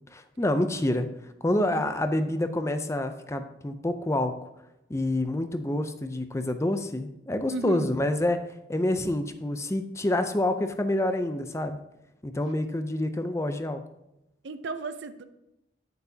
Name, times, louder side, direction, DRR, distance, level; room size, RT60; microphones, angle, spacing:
voice 1, 0.1-1.1 1.4-4.5 4.9-11.8 12.2-13.8, left 1 dB, 15° left, 8 dB, 0.5 m, -27 dB
voice 2, 7.5-7.9 14.4-15.2, right 3 dB, 80° right, 10 dB, 0.6 m, -35 dB
9.1 x 8.0 x 2.8 m, 0.88 s
head